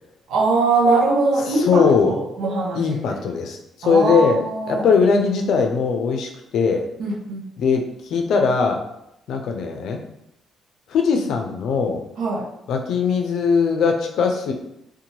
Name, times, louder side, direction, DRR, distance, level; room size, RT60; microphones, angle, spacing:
voice 1, 0.3-3.2 3.8-4.9 7.0-7.4 12.2-12.5, right 3 dB, 80° right, 0 dB, 0.6 m, -22 dB
voice 2, 1.5-2.1 2.7-4.4 4.7-6.9 7.6-8.9 9.3-10.0 10.9-12.0 12.7-14.5, left 5 dB, 75° left, 3 dB, 0.4 m, -20 dB
2.7 x 2.2 x 2.9 m, 0.82 s
cardioid pair, 90°, 0 cm